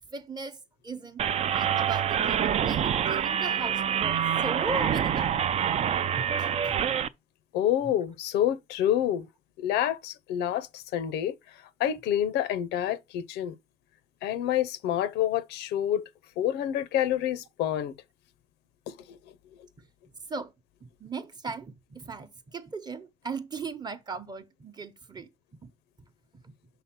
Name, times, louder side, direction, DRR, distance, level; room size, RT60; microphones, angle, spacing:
voice 1, 0.1-5.7 6.2-6.8 19.8-19.9 20.3-20.5 20.8-25.3 25.6-25.7 26.3-26.5, right 4 dB, 25° right, 0.8 m, -38 dB
sound 1, 1.2-7.1, right 8 dB, 40° right, 0.4 m, -26 dB
voice 2, 7.5-9.3 9.6-13.5 14.2-16.0 16.4-17.9 18.9-19.2, left 11 dB, 85° left, 0.7 m, -28 dB
5.7 x 3.5 x 5.9 m
cardioid pair, 110°, 17 cm